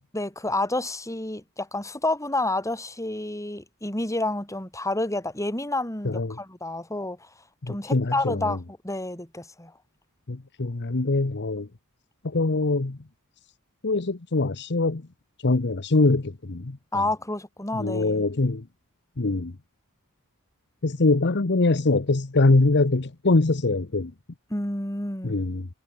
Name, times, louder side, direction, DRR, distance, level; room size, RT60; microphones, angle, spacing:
voice 1, 0.1-7.3 7.7-9.7 16.9-18.3 24.5-25.4, left 2 dB, 15° left, 7.4 m, -29 dB
voice 2, 6.0-6.4 7.6-8.4 10.3-11.7 12.2-13.0 13.8-15.0 15.4-16.8 17.8-18.6 19.2-19.5 20.8-24.1 25.2-25.7, left 2 dB, 50° left, 1.0 m, -23 dB
head